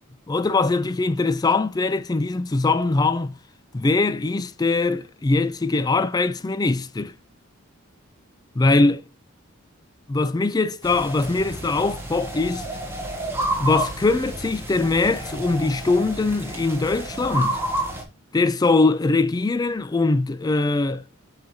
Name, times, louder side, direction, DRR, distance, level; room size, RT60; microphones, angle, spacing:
voice 1, 0.3-3.3 3.7-7.1 8.6-9.0 10.1-12.6 13.6-17.6 18.3-21.0, left 3 dB, 20° left, 0.3 m, -22 dB
sound 1, 10.8-18.0, right 1 dB, 10° right, 1.3 m, -30 dB
7.6 x 4.8 x 2.7 m
head